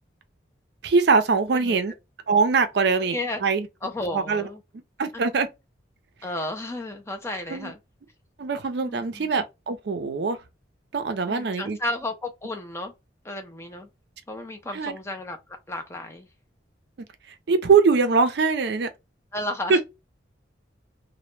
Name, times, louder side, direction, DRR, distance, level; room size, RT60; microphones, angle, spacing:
voice 1, 0.8-1.9 2.3-3.2 3.4-3.7 4.1-4.4 5.0-5.5 7.5-7.7 8.4-10.4 10.9-11.8 14.7-15.0 17.5-18.9 19.7-19.8, right 4 dB, 55° right, 0.4 m, -22 dB
voice 2, 3.1-3.4 3.8-4.6 5.1-5.3 6.2-7.8 8.8-9.3 11.3-12.9 13.2-13.9 14.3-15.4 15.7-16.3 19.3-19.8, left 1 dB, 15° left, 0.4 m, -33 dB
2.1 x 2.0 x 3.0 m
head